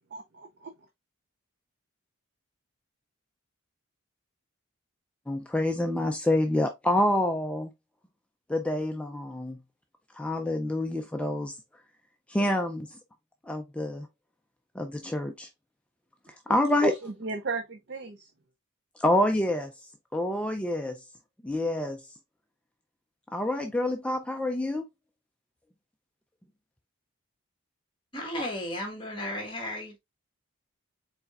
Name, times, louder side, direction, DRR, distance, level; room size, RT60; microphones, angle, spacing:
voice 1, 0.1-0.7 16.5-16.6 16.8-18.3, right 2 dB, 50° right, 0.5 m, -34 dB
voice 2, 5.3-7.7 8.5-9.6 10.1-11.5 12.3-12.9 13.5-14.1 14.8-15.5 16.5-16.9 19.0-19.7 20.1-21.0 21.4-22.0 23.3-24.8, left 1 dB, 5° left, 0.3 m, -27 dB
voice 3, 28.1-30.0, left 1 dB, 20° left, 1.4 m, -34 dB
4.8 x 4.1 x 2.4 m
head